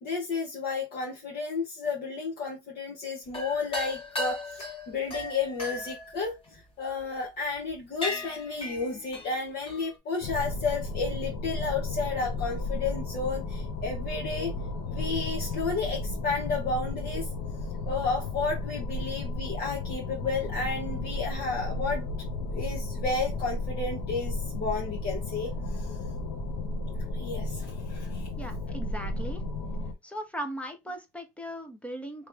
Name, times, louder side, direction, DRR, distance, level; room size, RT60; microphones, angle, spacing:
voice 1, 0.0-14.5 14.9-17.3 17.9-22.1 22.5-25.5 25.7-25.9 27.1-28.3, left 4 dB, 55° left, 1.2 m, -32 dB
sound 1, 3.3-7.0 7.5-7.7 8.0-9.9, left 2 dB, 30° left, 1.4 m, -36 dB
sound 2, 10.2-29.9, left 2 dB, 80° left, 1.1 m, -33 dB
voice 2, 28.4-29.4 30.0-32.3, right 1 dB, 5° left, 0.8 m, -38 dB
3.2 x 3.1 x 3.3 m
cardioid pair, 125°, 19 cm